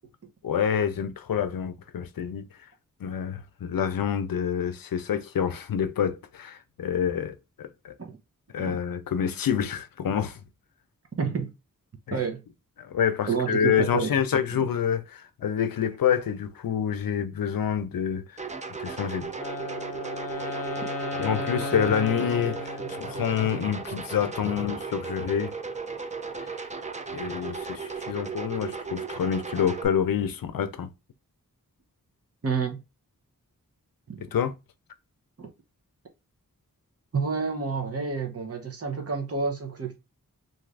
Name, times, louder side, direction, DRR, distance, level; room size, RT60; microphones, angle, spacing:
voice 1, 0.4-2.5 3.0-7.9 8.5-10.4 12.1-12.2 12.8-18.4 18.8-19.3 21.2-25.5 26.4-26.5 27.1-30.9 34.2-34.5, left 8 dB, 85° left, 0.5 m, -27 dB
voice 2, 11.2-11.5 12.1-12.4 13.3-14.7 32.4-32.8 34.1-34.2 35.4-35.5 37.1-40.0, right 5 dB, 45° right, 0.8 m, -29 dB
sound 1, 18.4-29.9, right 5 dB, 20° right, 0.4 m, -36 dB
Wind instrument woodwind instrument, 19.3-23.5, left 2 dB, 40° left, 0.8 m, -34 dB
2.6 x 2.5 x 3.2 m
wide cardioid pair, 75°, 34 cm